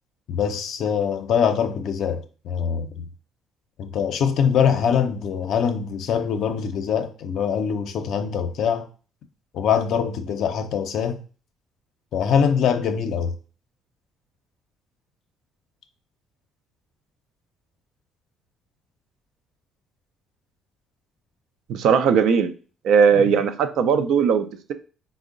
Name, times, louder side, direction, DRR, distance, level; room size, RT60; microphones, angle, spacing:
voice 1, 0.3-3.1 3.8-8.9 9.5-11.2 12.1-13.3, left 7 dB, 70° left, 0.5 m, -23 dB
voice 2, 21.7-22.5 22.8-24.7, right 6 dB, 75° right, 0.4 m, -18 dB
3.6 x 2.0 x 3.7 m
supercardioid pair, 75°, 0 cm